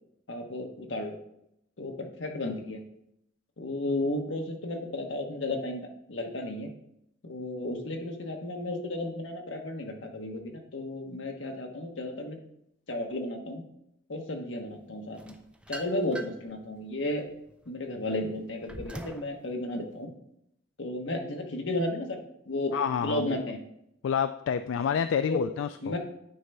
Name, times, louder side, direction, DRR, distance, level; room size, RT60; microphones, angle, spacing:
voice 1, 0.3-1.2 1.8-2.8 3.6-6.7 7.2-12.4 12.9-13.6 14.1-15.3 15.7-17.2 17.7-20.1 20.8-22.2 22.5-22.8 23.0-23.6 25.2-25.5 25.8-26.0, left 1 dB, 70° left, 3 dB, 1.2 m, -33 dB
sound 1, 15.2-16.5 17.0-19.3, right 1 dB, 5° right, 0.5 m, -43 dB
voice 2, 22.7-23.4 24.0-25.9, left 7 dB, 90° left, 11 dB, 0.3 m, -28 dB
9.4 x 3.4 x 5.5 m, 0.78 s
head